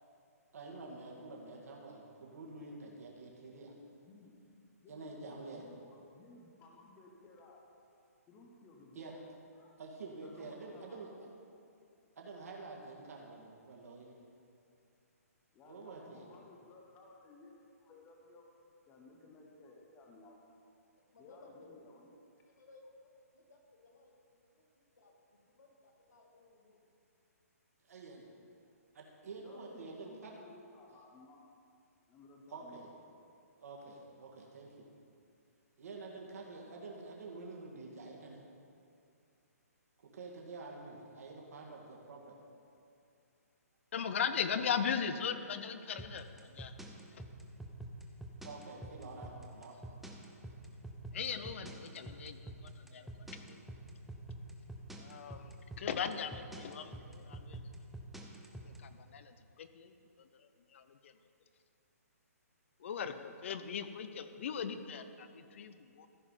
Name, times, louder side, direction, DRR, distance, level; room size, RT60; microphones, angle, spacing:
voice 1, 0.5-3.7 4.9-5.6 8.9-9.1 9.8-11.1 12.2-14.1 15.6-16.3 27.9-28.2 28.9-30.3 32.5-32.9 33.6-34.9 35.8-38.4 40.0-42.4 48.4-49.8, right 3 dB, 65° right, -1 dB, 2.1 m, -48 dB
voice 2, 3.6-4.4 4.8-7.6 8.3-9.2 9.5-9.8 10.2-11.3 15.5-18.4 18.9-20.5 21.2-22.2 29.4-31.5 32.1-32.9, left 2 dB, 15° left, 1 dB, 0.9 m, -58 dB
voice 3, 20.9-21.7 22.6-24.4 24.8-25.1 25.5-26.8, left 3 dB, 85° left, 0 dB, 2.2 m, -60 dB
voice 4, 43.9-46.7 51.1-53.1 53.5-53.6 55.0-57.6 58.6-59.9 60.7-61.1 62.8-66.1, left 7 dB, 50° left, 10 dB, 0.7 m, -39 dB
sound 1, 46.0-58.8, right 1 dB, ahead, 0.6 m, -46 dB
14.5 x 4.9 x 5.6 m, 2.5 s
hypercardioid pair, 155°, 9 cm